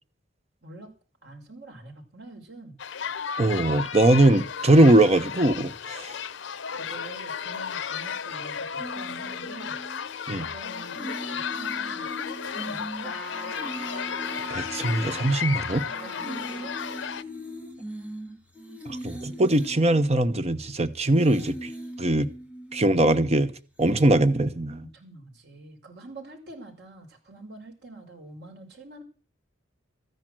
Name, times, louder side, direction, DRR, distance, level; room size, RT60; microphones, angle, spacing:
voice 1, 0.6-0.9 1.2-2.8 3.7-3.8 6.8-9.8 10.5-13.2 16.0-16.7 24.8-29.0, right 2 dB, 65° right, 5.8 m, -45 dB
sound 1, 2.8-17.2, left 7 dB, 75° left, 0.8 m, -34 dB
voice 2, 3.4-6.2 10.3-10.5 14.5-15.9 18.9-21.7 22.0-22.3 22.7-23.5 23.8-24.8, right 1 dB, 35° right, 1.0 m, -21 dB
sound 2, 8.8-10.3 10.6-15.5 15.9-20.7 21.1-23.4 23.8-23.9, equal, 5° right, 2.6 m, -40 dB
Trumpet, 13.0-16.7, left 1 dB, 10° left, 5.4 m, -41 dB
14.0 x 10.5 x 7.7 m
head